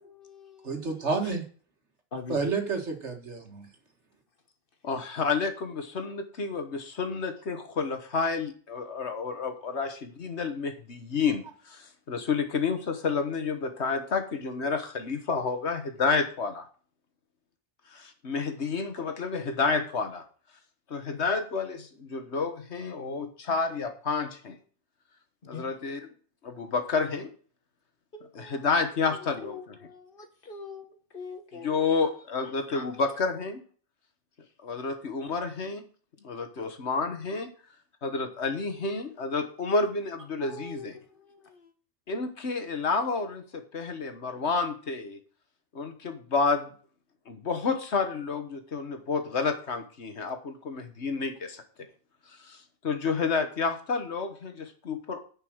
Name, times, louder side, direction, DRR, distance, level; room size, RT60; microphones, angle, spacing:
voice 1, 0.0-1.1 2.1-2.5 25.4-25.7 28.1-28.7 29.1-31.8 32.7-32.9 40.4-41.7, left 4 dB, 50° left, 7 dB, 1.5 m, -43 dB
voice 2, 0.6-1.4 2.3-3.7, right 4 dB, 80° right, 4 dB, 2.2 m, -30 dB
voice 3, 4.8-16.6 17.9-20.2 20.9-24.6 25.5-26.0 26.4-27.3 28.3-29.8 31.6-33.6 34.6-35.8 36.2-37.5 38.0-41.0 42.1-45.2 45.7-46.7 47.3-51.6 52.3-55.2, left 4 dB, 70° left, 8 dB, 1.7 m, -30 dB
10.0 x 5.5 x 6.3 m, 0.42 s
omnidirectional pair, 1.2 m